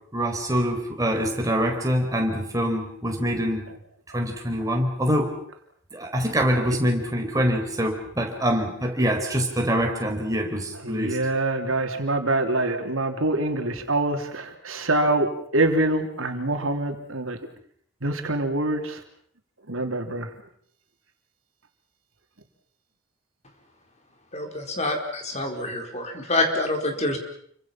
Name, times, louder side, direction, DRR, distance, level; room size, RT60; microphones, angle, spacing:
voice 1, 0.1-3.6 4.1-5.3 5.9-11.2, equal, 15° right, 2 dB, 4.7 m, -25 dB
voice 2, 10.8-17.4 18.0-19.0 19.7-20.3, right 2 dB, 80° right, 4 dB, 3.3 m, -25 dB
voice 3, 24.3-27.2, left 2 dB, 35° left, 3 dB, 4.7 m, -26 dB
29.5 x 25.0 x 5.9 m, 0.64 s
head